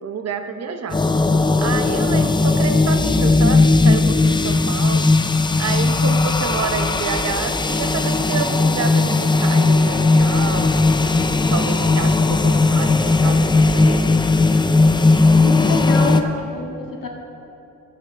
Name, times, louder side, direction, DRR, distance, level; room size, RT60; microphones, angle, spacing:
voice 1, 0.0-1.0 1.6-5.1 5.6-14.1 15.6-16.5, right 5 dB, 50° right, 8 dB, 0.8 m, -29 dB
sound 1, 0.9-16.2, left 3 dB, 15° left, 0.4 m, -17 dB
voice 2, 15.3-17.1, left 4 dB, 80° left, 0 dB, 1.9 m, -27 dB
14.5 x 13.5 x 3.4 m, 2.8 s
wide cardioid pair, 150°, 32 cm